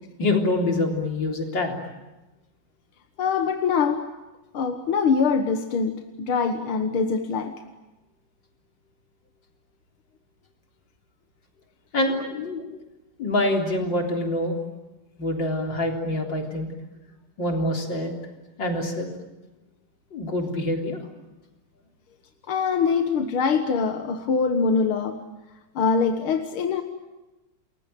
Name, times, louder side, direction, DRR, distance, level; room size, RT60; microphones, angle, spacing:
voice 1, 0.2-1.7 11.9-12.8 13.2-14.6 15.2-16.7 17.4-18.1 18.6-19.1 20.1-21.0, left 1 dB, 60° left, 2 dB, 4.3 m, -25 dB
voice 2, 3.2-4.1 4.5-7.5 22.5-25.2 25.8-26.8, left 5 dB, 80° left, 6 dB, 2.2 m, -23 dB
29.5 x 21.5 x 9.1 m, 1.1 s
omnidirectional pair, 2.3 m